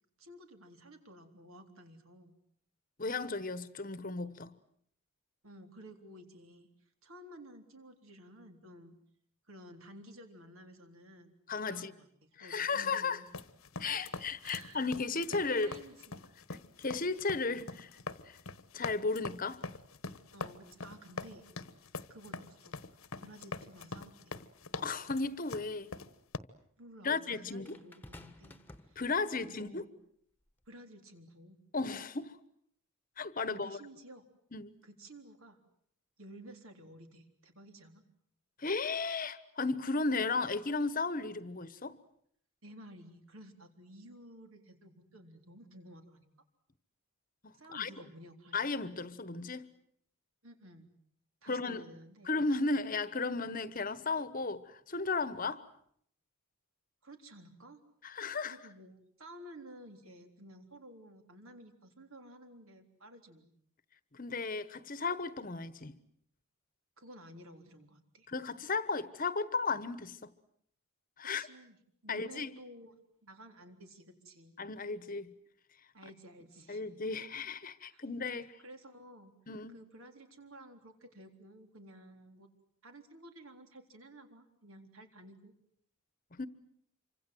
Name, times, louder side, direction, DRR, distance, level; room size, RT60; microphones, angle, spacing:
voice 1, 0.2-2.4 5.4-6.7 7.0-9.0 9.5-11.3 11.7-13.3 13.9-14.0 14.4-16.2 20.3-21.5 22.1-22.8 23.2-24.3 26.8-28.6 28.9-29.9 30.7-31.6 33.4-34.2 34.8-35.6 36.2-38.0 42.6-46.3 47.5-48.6 50.4-50.9 51.4-52.4 57.0-57.8 58.4-63.5 67.0-68.3 71.4-74.6 75.9-76.8 77.9-78.0 78.6-79.3 79.7-82.5 82.8-85.5, right 1 dB, 70° right, 3.8 m, -53 dB
voice 2, 3.0-4.6 11.5-11.9 12.4-13.2 13.8-15.7 16.8-17.9 18.3-18.4 18.7-19.6 24.7-25.9 27.0-27.8 29.0-29.8 31.7-32.4 33.2-33.8 34.5-34.8 38.6-42.0 47.4-47.9 48.5-49.7 51.5-51.8 52.2-55.6 58.0-58.6 64.1-66.0 68.3-70.3 71.2-71.5 72.1-72.5 74.6-75.3 76.7-78.6 79.5-79.8 86.3-86.5, left 4 dB, 40° left, 1.2 m, -35 dB
sound 1, 13.3-26.4, left 3 dB, 70° left, 1.2 m, -44 dB
sound 2, 27.6-29.5 30.5-30.7, left 1 dB, 10° left, 1.4 m, -54 dB
27.5 x 25.5 x 7.8 m
head